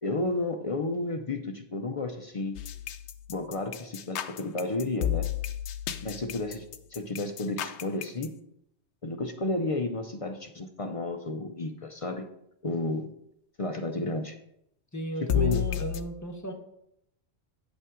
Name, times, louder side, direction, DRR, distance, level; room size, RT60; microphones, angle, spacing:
voice 1, 0.0-2.6 3.3-5.3 6.0-6.7 6.9-8.3 9.0-12.3 12.6-13.1 13.6-14.4 15.2-15.7, left 2 dB, 40° left, 6 dB, 0.5 m, -32 dB
sound 1, 2.6-8.3 15.3-16.0, left 11 dB, 75° left, 0.8 m, -32 dB
voice 2, 14.9-16.5, right 1 dB, 15° left, 2 dB, 1.0 m, -35 dB
9.1 x 5.6 x 3.7 m, 0.76 s
omnidirectional pair, 1.2 m